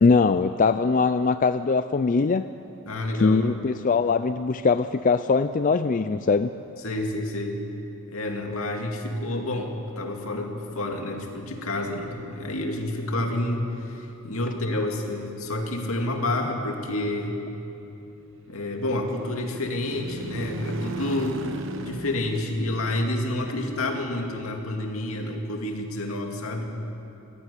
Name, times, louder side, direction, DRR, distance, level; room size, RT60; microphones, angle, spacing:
voice 1, 0.0-2.5 3.1-6.5, left 4 dB, 40° left, 11 dB, 0.4 m, -21 dB
voice 2, 2.9-3.5 6.8-7.6 8.1-17.4 18.5-21.5 21.8-26.7, left 1 dB, 80° left, 3 dB, 2.4 m, -29 dB
sound 1, 18.1-24.7, right 2 dB, 65° right, 1.1 m, -38 dB
17.5 x 15.5 x 9.8 m, 2.9 s
head